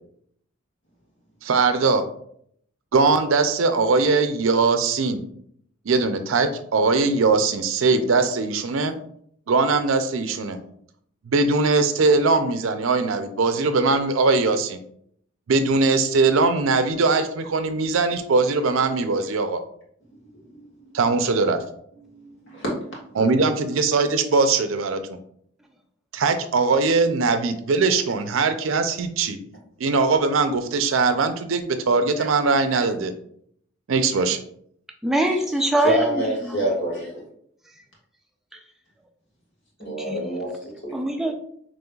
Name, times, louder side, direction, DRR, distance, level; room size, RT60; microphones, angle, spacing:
voice 1, 1.4-2.0 2.9-5.2 5.9-8.9 9.5-10.6 11.3-14.8 15.5-19.6 20.9-21.6 23.2-25.2 26.1-29.4 29.8-33.1 33.9-34.4, right 4 dB, 70° right, 0.5 m, -21 dB
voice 2, 22.1-23.0 23.4-23.5 35.8-37.2 39.8-40.5 40.8-40.9, right 1 dB, 60° left, 1.6 m, -26 dB
voice 3, 35.0-36.6 39.8-40.2 40.9-41.3, right 1 dB, ahead, 0.4 m, -23 dB
5.3 x 3.1 x 2.3 m
head